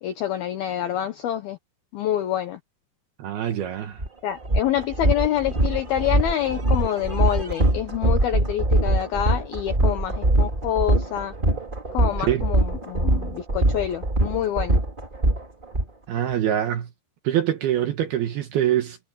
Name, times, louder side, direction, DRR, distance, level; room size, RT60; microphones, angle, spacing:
voice 1, 0.0-1.6 1.9-2.6 4.2-11.3 11.9-14.8, left 11 dB, 80° left, 2.2 m, -27 dB
voice 2, 3.2-4.0 12.3-12.5 16.1-16.9 17.2-19.0, right 11 dB, 70° right, 2.5 m, -24 dB
sound 1, 4.0-4.1 4.4-15.8, right 1 dB, 45° right, 0.6 m, -22 dB
omnidirectional pair, 5.8 m